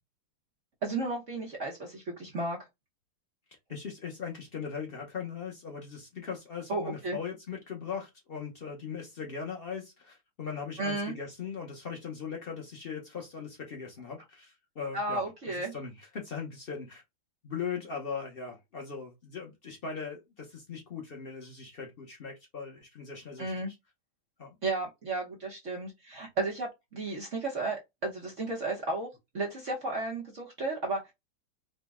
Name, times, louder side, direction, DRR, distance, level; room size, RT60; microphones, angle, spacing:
voice 1, 0.8-2.6 6.7-7.2 10.8-11.1 14.9-15.7 23.4-23.7 24.6-29.1 29.3-31.1, right 2 dB, 50° right, 1.0 m, -33 dB
voice 2, 3.7-17.0 17.4-23.7 24.4-24.6, left 6 dB, 80° left, 0.5 m, -39 dB
5.1 x 2.2 x 3.5 m
omnidirectional pair, 2.3 m